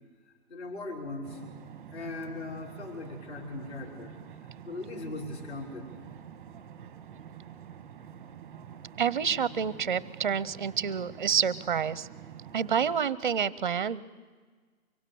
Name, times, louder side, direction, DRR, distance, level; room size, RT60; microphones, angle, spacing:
voice 1, 0.5-1.4 1.9-4.1 4.6-5.9, left 3 dB, 45° left, 0 dB, 5.7 m, -39 dB
sound 1, 1.2-13.0, right 9 dB, 10° right, 1.0 m, -47 dB
voice 2, 9.0-12.1 12.5-14.0, right 7 dB, 35° right, 20 dB, 0.7 m, -28 dB
24.0 x 23.5 x 8.5 m, 1.5 s
hypercardioid pair, 160°, 45 cm